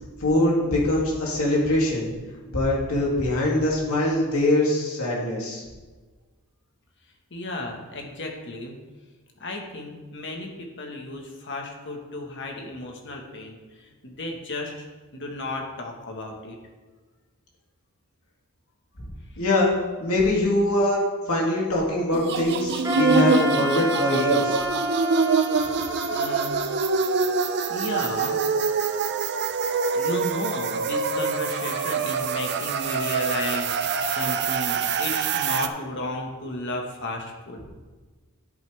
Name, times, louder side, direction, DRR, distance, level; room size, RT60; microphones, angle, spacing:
voice 1, 0.2-2.1 2.5-5.6 19.4-19.7 20.0-24.6, left 1 dB, 75° left, -3 dB, 2.7 m, -23 dB
voice 2, 7.3-8.8 9.4-13.6 14.0-14.9 15.1-16.6 26.1-26.6 27.7-28.4 29.9-37.7, left 2 dB, 55° left, 1 dB, 1.6 m, -34 dB
sound 1, 22.1-35.7, right 5 dB, 50° right, 0.5 m, -25 dB
Wind instrument woodwind instrument, 22.8-27.9, left 1 dB, 15° right, 1.5 m, -30 dB
10.0 x 9.0 x 3.5 m, 1.3 s
head